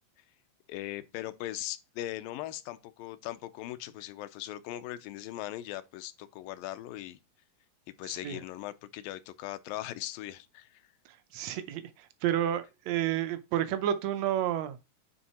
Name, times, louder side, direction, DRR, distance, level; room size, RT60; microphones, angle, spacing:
voice 1, 0.7-7.2 8.0-10.8, left 14 dB, 90° left, 2.3 m, -39 dB
voice 2, 11.3-14.9, right 11 dB, 80° right, 1.5 m, -30 dB
9.6 x 3.7 x 4.2 m
omnidirectional pair, 3.9 m